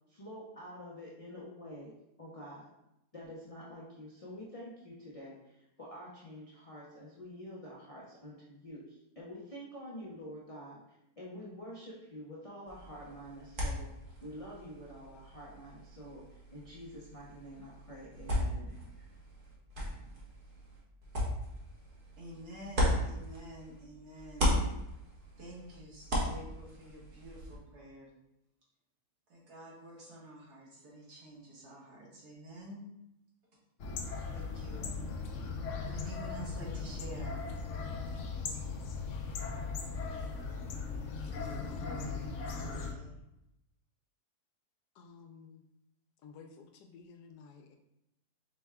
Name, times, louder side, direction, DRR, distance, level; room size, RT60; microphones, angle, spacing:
voice 1, 0.1-2.7 3.1-13.9 14.2-19.1, equal, 50° left, -6 dB, 0.4 m, -48 dB
sound 1, 12.7-23.8 24.1-27.6, left 1 dB, 40° right, 0.9 m, -36 dB
voice 2, 22.2-24.6 25.4-28.1 29.3-32.8 34.1-35.0 35.8-37.4 41.5-41.6 42.1-42.3 42.6-43.1, equal, 70° right, -5 dB, 1.9 m, -49 dB
sound 2, 33.8-42.9, left 4 dB, 65° left, 0.8 m, -38 dB
voice 3, 41.6-42.2 44.9-45.6 46.2-47.8, left 5 dB, 85° left, 5 dB, 1.1 m, -52 dB
5.2 x 2.2 x 3.4 m, 0.86 s
omnidirectional pair, 1.7 m